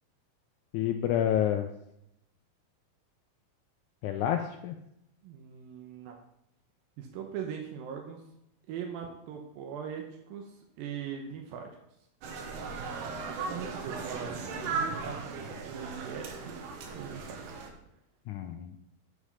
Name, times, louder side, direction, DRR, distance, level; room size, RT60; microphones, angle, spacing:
voice 1, 0.7-1.7 4.0-4.8 18.3-18.8, left 10 dB, 85° left, 6 dB, 1.7 m, -29 dB
voice 2, 5.2-6.2 7.0-8.2 8.7-10.0 10.3-10.4 10.8-11.7 13.5-14.4 14.7-16.6 16.9-17.4, right 8 dB, 85° right, 2 dB, 2.7 m, -40 dB
sound 1, 12.2-17.7, right 4 dB, 70° right, 2.5 m, -37 dB
9.3 x 5.0 x 5.6 m, 0.79 s
omnidirectional pair, 4.1 m